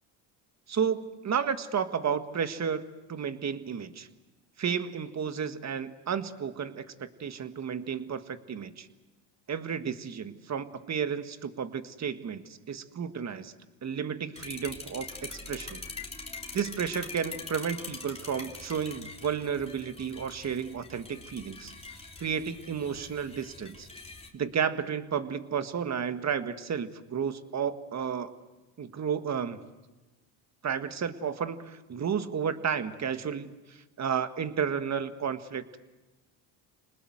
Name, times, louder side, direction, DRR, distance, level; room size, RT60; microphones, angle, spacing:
voice 1, 0.7-4.1 4.6-8.9 9.5-13.5 13.8-15.8 16.5-21.7 22.2-23.9 24.3-28.3 28.8-29.6 30.6-35.8, right 7 dB, 35° right, 10 dB, 1.7 m, -32 dB
sound 1, 14.4-24.3, left 3 dB, 15° left, 3.5 m, -43 dB
27.0 x 20.0 x 7.9 m, 1.1 s
supercardioid pair, 95°, 45 cm